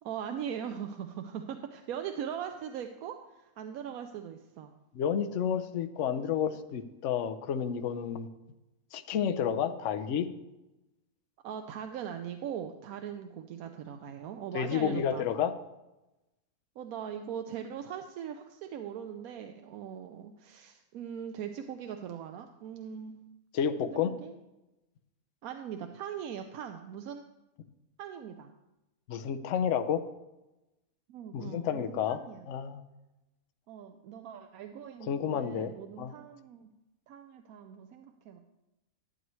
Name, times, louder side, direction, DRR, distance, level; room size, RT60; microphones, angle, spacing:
voice 1, 0.0-4.7 11.4-15.3 16.8-23.2 23.8-24.3 25.4-27.2 28.0-28.5 31.1-32.5 33.7-36.7 37.1-38.4, right 8 dB, 90° right, 6 dB, 1.1 m, -40 dB
voice 2, 4.9-8.3 8.9-10.3 14.5-15.5 23.5-24.1 29.1-30.0 31.3-32.2 32.5-32.8 35.1-35.7 36.0-36.1, left 8 dB, 65° left, 9 dB, 0.9 m, -30 dB
12.0 x 9.3 x 3.1 m, 0.99 s
omnidirectional pair, 1.5 m